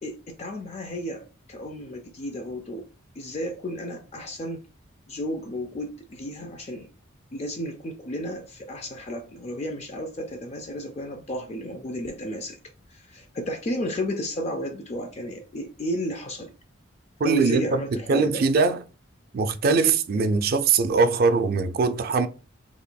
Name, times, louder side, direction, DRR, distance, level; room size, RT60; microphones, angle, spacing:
voice 1, 0.0-2.8 3.2-4.6 5.1-6.9 7.3-12.6 12.9-16.5 17.2-18.4, left 1 dB, 35° left, 0.4 m, -33 dB
voice 2, 17.2-17.8 18.1-18.8 19.3-22.3, right 4 dB, 50° right, 0.4 m, -21 dB
4.1 x 2.9 x 2.2 m
head